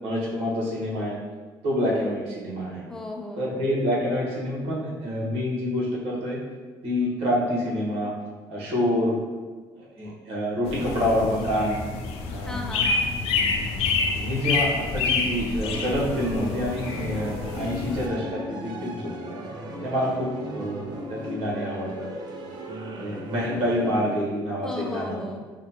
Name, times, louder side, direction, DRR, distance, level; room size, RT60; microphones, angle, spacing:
voice 1, 0.0-1.2 1.6-2.8 3.4-6.4 6.8-8.1 8.5-9.2 10.0-11.8 12.3-12.6 14.1-19.0 19.8-22.1 23.0-25.2, equal, 70° right, -5 dB, 1.4 m, -27 dB
voice 2, 2.9-3.7 12.4-13.0 24.6-25.4, left 2 dB, 5° left, 0 dB, 0.6 m, -35 dB
sound 1, 10.7-18.1, left 4 dB, 70° left, 0.5 m, -28 dB
sound 2, 15.6-24.2, equal, 45° right, 0.6 m, -37 dB
5.2 x 2.4 x 2.9 m, 1.4 s
supercardioid pair, 90°, 10 cm